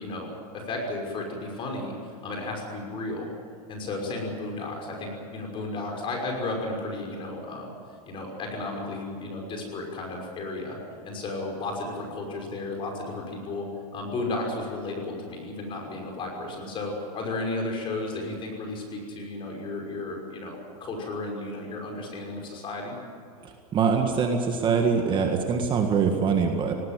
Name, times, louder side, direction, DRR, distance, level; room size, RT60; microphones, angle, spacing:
voice 1, 0.0-3.3 3.7-7.7 8.1-10.8 11.0-23.0, left 2 dB, 25° left, 1 dB, 5.8 m, -33 dB
voice 2, 23.4-26.7, right 5 dB, 25° right, 4 dB, 1.8 m, -24 dB
19.0 x 18.5 x 9.2 m, 2.6 s
supercardioid pair, 150°, 19 cm